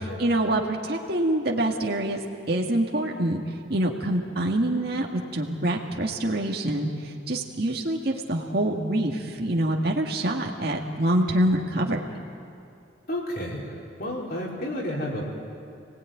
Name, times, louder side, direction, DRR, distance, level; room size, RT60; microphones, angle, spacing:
voice 1, 0.0-2.2 2.5-3.4 3.7-12.0, right 1 dB, 55° right, 0 dB, 2.1 m, -25 dB
voice 2, 13.1-13.6 14.0-15.2, left 1 dB, 50° left, -3 dB, 5.0 m, -31 dB
29.5 x 18.5 x 9.4 m, 2.5 s
head